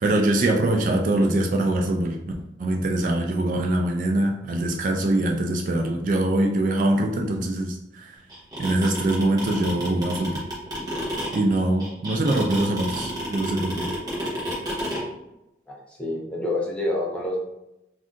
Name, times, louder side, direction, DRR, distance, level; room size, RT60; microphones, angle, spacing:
voice 1, 0.0-2.3 2.6-8.2 8.6-10.5 11.3-13.9, right 1 dB, 45° right, 1 dB, 0.3 m, -23 dB
sound 1, 8.3-15.0, equal, 20° right, 0.9 m, -30 dB
voice 2, 15.7-17.4, left 1 dB, 5° left, -3 dB, 0.6 m, -28 dB
2.5 x 2.4 x 3.6 m, 0.88 s
head